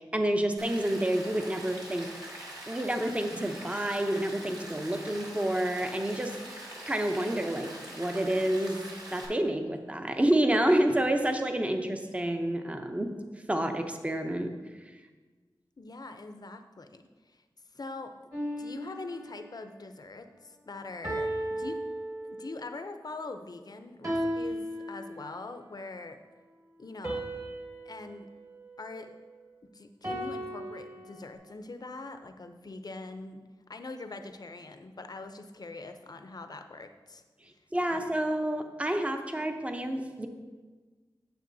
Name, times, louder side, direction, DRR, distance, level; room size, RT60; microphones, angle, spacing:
voice 1, 0.0-2.1 2.7-8.8 9.1-13.2 13.5-14.6 37.7-40.3, right 1 dB, 15° right, 6 dB, 0.6 m, -29 dB
Rain, 0.6-9.3, right 1 dB, 55° right, 2.2 m, -44 dB
voice 2, 15.8-17.4 17.7-21.8 22.2-26.2 26.8-27.2 27.9-28.3 28.8-29.2 29.7-33.4 33.7-37.2 37.9-38.1, left 3 dB, 50° left, 7 dB, 0.6 m, -43 dB
sound 1, 18.3-19.6 21.0-22.7 24.0-25.5 27.0-29.4 30.0-31.3, right 1 dB, 35° right, 1.7 m, -36 dB
9.3 x 7.5 x 2.7 m, 1.4 s
wide cardioid pair, 80°, 9 cm